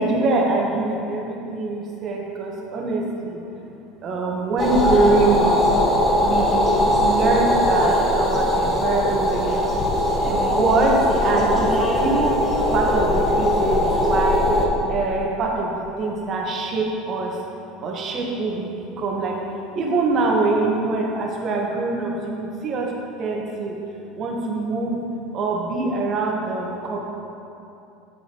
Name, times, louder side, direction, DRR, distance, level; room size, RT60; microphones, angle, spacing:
voice 1, 0.0-3.4 4.0-5.6 6.2-9.6 10.2-12.4 12.7-14.5 14.9-17.4 17.8-19.4 19.7-22.9 23.2-23.8 24.2-25.0 25.3-27.0, right 3 dB, 45° right, -1 dB, 1.4 m, -24 dB
sound 1, 4.6-14.7, left 1 dB, 30° left, 1.4 m, -20 dB
8.4 x 7.3 x 3.0 m, 2.8 s
hypercardioid pair, 80°, 0 cm